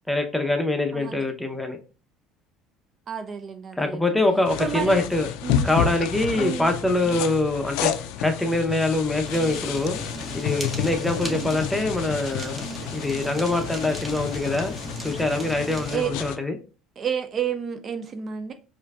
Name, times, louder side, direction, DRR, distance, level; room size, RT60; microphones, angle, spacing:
voice 1, 0.1-1.8 3.8-5.3 5.6-7.9 8.2-10.0 10.3-12.6 12.9-14.8 15.0-16.6, left 2 dB, 5° left, 0.7 m, -24 dB
voice 2, 0.9-1.3 3.1-4.0 4.6-5.0 5.4-6.1 6.3-6.7 7.0-7.2 11.3-11.6 15.9-16.1 17.0-18.5, right 7 dB, 40° right, 0.4 m, -31 dB
sound 1, 4.5-16.4, left 9 dB, 80° left, 0.3 m, -31 dB
Fire, 9.2-16.0, right 1 dB, 15° right, 1.0 m, -36 dB
4.4 x 2.6 x 2.4 m
supercardioid pair, 95°, 0 cm